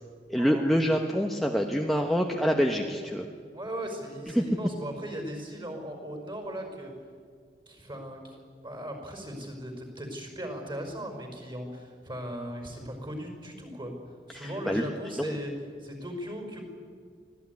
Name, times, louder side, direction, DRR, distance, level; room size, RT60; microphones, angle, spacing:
voice 1, 0.3-3.2 4.3-4.4 14.3-14.8 15.1-15.3, equal, ahead, 1 dB, 1.1 m, -26 dB
voice 2, 3.5-6.9 7.7-8.4 8.6-13.9 14.3-15.5 15.8-16.6, equal, 25° right, 4 dB, 5.5 m, -38 dB
24.5 x 17.0 x 9.7 m, 2.1 s
head